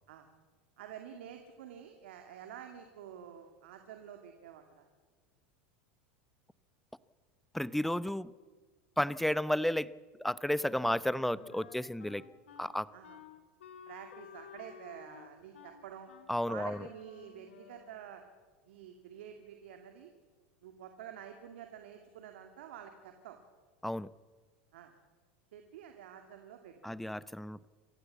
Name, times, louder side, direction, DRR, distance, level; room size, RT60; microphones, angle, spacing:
voice 1, 0.8-4.9 12.9-13.2 13.9-16.1 16.5-18.2 18.6-20.1 20.6-23.4 24.7-24.9 25.5-27.0, right 9 dB, 75° right, 5 dB, 2.3 m, -49 dB
voice 2, 7.5-8.3 9.0-9.9 10.2-12.2 12.6-12.9 16.3-16.8 23.8-24.1 26.8-27.6, left 1 dB, 5° left, 18 dB, 0.7 m, -32 dB
Wind instrument woodwind instrument, 10.5-18.0, left 7 dB, 90° left, 2.1 m, -54 dB
26.5 x 14.5 x 8.4 m, 1.5 s
hypercardioid pair, 100°, 6 cm